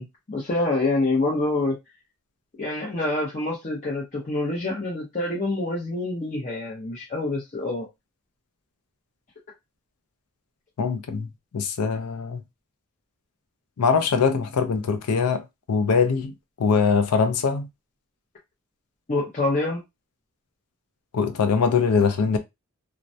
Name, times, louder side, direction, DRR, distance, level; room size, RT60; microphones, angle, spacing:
voice 1, 0.0-1.8 2.6-7.9 19.1-19.8, left 2 dB, 35° left, 0.6 m, -26 dB
voice 2, 10.8-11.3 11.5-12.4 13.8-15.4 15.7-16.3 16.6-17.7 21.1-22.4, left 5 dB, 85° left, 0.5 m, -22 dB
2.2 x 2.1 x 2.6 m
head